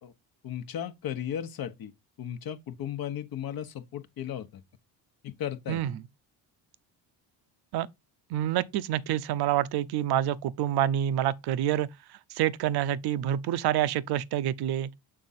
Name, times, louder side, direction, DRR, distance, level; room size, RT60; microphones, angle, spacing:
voice 1, 0.4-1.9 2.2-4.6 5.2-5.8, left 10 dB, 55° left, 1.0 m, -35 dB
voice 2, 8.3-11.9 12.3-14.9, right 11 dB, 60° right, 0.7 m, -27 dB
6.8 x 3.7 x 4.1 m
supercardioid pair, 70°, 43 cm